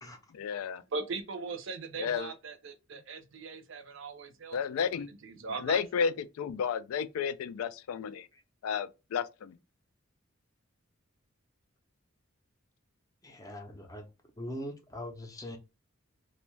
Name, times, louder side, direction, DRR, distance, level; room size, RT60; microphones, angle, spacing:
voice 1, 0.3-0.8 2.0-2.3 4.5-5.1 5.6-8.3 8.6-9.6, left 7 dB, 85° left, 0.3 m, -32 dB
voice 2, 0.9-6.1, right 4 dB, 60° right, 0.5 m, -40 dB
voice 3, 13.2-14.1 14.4-15.6, equal, 15° left, 0.5 m, -41 dB
2.6 x 2.2 x 3.1 m
head